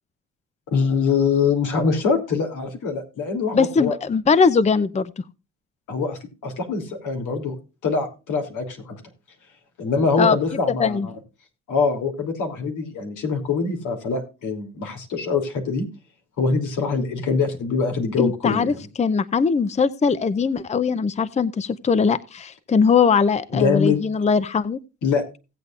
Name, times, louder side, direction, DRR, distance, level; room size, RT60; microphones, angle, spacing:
voice 1, 0.7-3.9 5.9-7.6 7.8-9.0 9.8-11.0 11.7-15.8 16.4-18.8 23.5-24.0 25.0-25.2, left 5 dB, 80° left, 4 dB, 3.1 m, -23 dB
voice 2, 3.5-5.1 10.2-10.4 10.8-11.1 18.2-24.8, left 5 dB, 20° left, 15 dB, 0.6 m, -20 dB
17.5 x 8.2 x 2.5 m, 0.29 s
cardioid pair, 90°, 30 cm